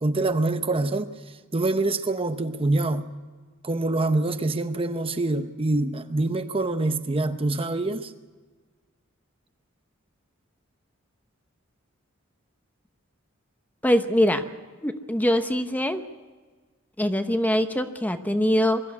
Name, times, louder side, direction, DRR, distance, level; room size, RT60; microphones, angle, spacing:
voice 1, 0.0-1.1 1.5-3.0 3.6-8.1, right 2 dB, 25° right, 0.8 m, -25 dB
voice 2, 13.8-14.4 14.8-16.0 17.0-18.8, equal, 10° left, 0.8 m, -23 dB
22.0 x 13.0 x 9.5 m
head